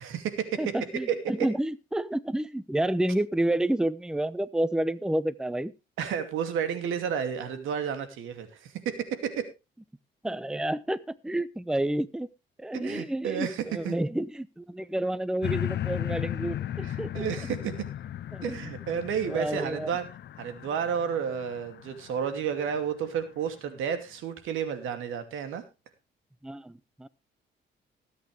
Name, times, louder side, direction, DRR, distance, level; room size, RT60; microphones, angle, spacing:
voice 1, 0.0-0.6 1.1-1.5 6.0-9.5 12.7-14.0 16.8-17.7 18.4-20.0 20.4-25.6, right 8 dB, 85° right, 9 dB, 2.5 m, -31 dB
voice 2, 0.6-5.7 10.2-12.3 12.6-17.2 18.3-18.6 19.3-19.9 26.4-27.1, right 1 dB, 5° right, 17 dB, 0.7 m, -30 dB
sound 1, 15.4-22.8 23.4-23.5, left 12 dB, 60° left, 0.7 m, -36 dB
20.0 x 8.6 x 3.3 m, 0.27 s
cardioid pair, 90°, 20 cm